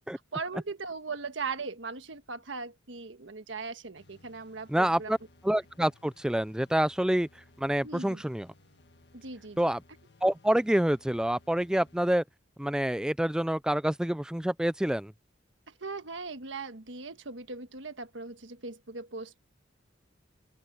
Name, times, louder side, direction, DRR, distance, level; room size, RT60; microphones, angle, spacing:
voice 1, 0.3-5.1 7.8-8.2 9.1-9.7 15.7-19.4, right 4 dB, 75° right, 1.5 m, -39 dB
sound 1, 4.0-12.0, left 2 dB, 60° left, 1.6 m, -60 dB
voice 2, 4.7-5.2 5.4-7.3 7.6-8.5 9.6-9.8 10.2-12.2 12.6-15.1, right 1 dB, 5° right, 0.3 m, -27 dB
open air
head